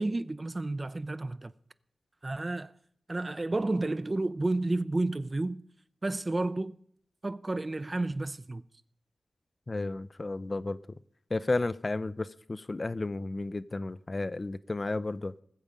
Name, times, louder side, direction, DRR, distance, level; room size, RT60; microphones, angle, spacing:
voice 1, 0.0-1.5 2.2-2.7 3.1-5.6 6.0-6.7 7.2-8.6, right 2 dB, 35° right, 0.5 m, -31 dB
voice 2, 9.7-10.8 11.3-15.3, left 2 dB, 35° left, 0.5 m, -32 dB
20.0 x 7.3 x 5.1 m
cardioid pair, 55°, 0 cm